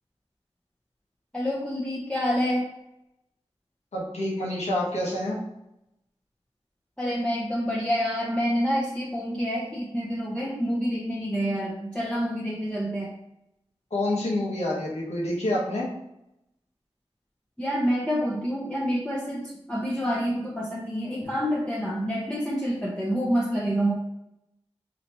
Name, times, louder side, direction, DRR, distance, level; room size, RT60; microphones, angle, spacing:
voice 1, 1.3-2.7 7.0-13.1 17.6-19.4 19.7-23.9, equal, 10° left, -4 dB, 0.8 m, -27 dB
voice 2, 3.9-5.4 13.9-15.9, left 1 dB, 85° left, -5 dB, 1.3 m, -27 dB
4.2 x 3.9 x 3.0 m, 0.84 s
wide cardioid pair, 50°, 11 cm